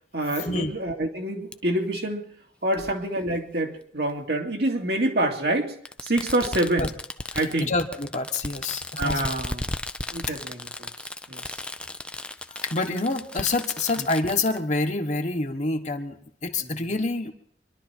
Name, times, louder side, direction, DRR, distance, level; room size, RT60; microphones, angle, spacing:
voice 1, 0.1-2.3 2.6-6.9 7.3-7.7 9.0-9.7 10.1-10.9 11.3-11.6 14.0-14.1 16.6-16.8, right 1 dB, 65° right, 2 dB, 2.3 m, -27 dB
Fireworks, 1.5-1.6 2.7-2.8 4.1-4.2 5.8-14.6, left 1 dB, 5° left, 0.6 m, -35 dB
voice 2, 7.6-9.2 12.6-17.3, left 3 dB, 45° left, 4 dB, 1.4 m, -27 dB
25.5 x 12.0 x 4.5 m, 0.63 s
head